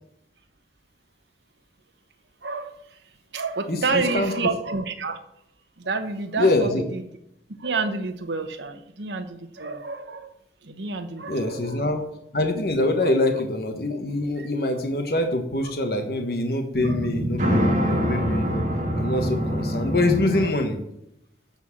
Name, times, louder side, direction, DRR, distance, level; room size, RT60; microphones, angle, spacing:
voice 1, 2.4-3.0 3.3-5.2 5.8-7.0 7.6-10.3 10.6-11.8 13.0-13.1 14.4-14.5 16.8-17.1 17.5-18.3 20.4-20.5, right 4 dB, 85° right, 7 dB, 1.0 m, -29 dB
voice 2, 3.7-4.3 6.4-6.8 11.3-12.0 12.3-18.6 19.0-20.8, left 2 dB, 55° left, 4 dB, 1.3 m, -24 dB
sound 1, 16.8-20.5, equal, 40° right, 1.9 m, -25 dB
13.0 x 4.4 x 7.3 m, 0.78 s
head